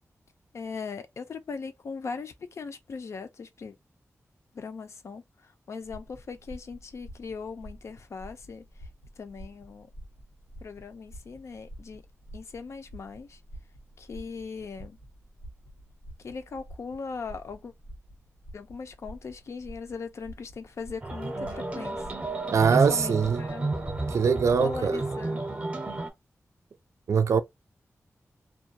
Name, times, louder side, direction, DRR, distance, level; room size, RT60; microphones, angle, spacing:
voice 1, 0.5-3.8 4.5-8.7 9.2-9.9 10.6-12.1 12.3-13.4 14.0-15.0 16.2-17.7 18.5-22.1 22.7-23.7 24.6-25.4, left 5 dB, 65° left, 0.5 m, -39 dB
sound 1, 5.8-25.0, equal, 85° left, 1.1 m, -48 dB
sound 2, 21.0-26.1, right 2 dB, 25° right, 0.6 m, -31 dB
voice 2, 22.5-23.4 24.1-25.0 27.1-27.4, right 6 dB, 70° right, 0.3 m, -23 dB
2.3 x 2.2 x 2.7 m
wide cardioid pair, 145°, 5 cm